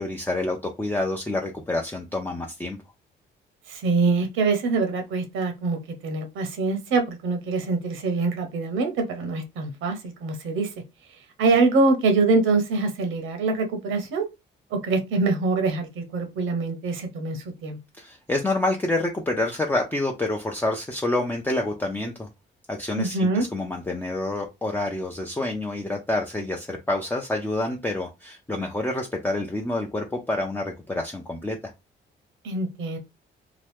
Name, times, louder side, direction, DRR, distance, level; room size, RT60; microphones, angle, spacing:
voice 1, 0.0-2.8 18.0-22.3 22.7-31.7, left 2 dB, 10° left, 0.6 m, -28 dB
voice 2, 3.7-10.7 11.4-14.2 14.7-17.8 23.0-23.4 32.4-33.0, right 3 dB, 85° right, 0.9 m, -24 dB
2.9 x 2.3 x 3.4 m
cardioid pair, 90°, 20 cm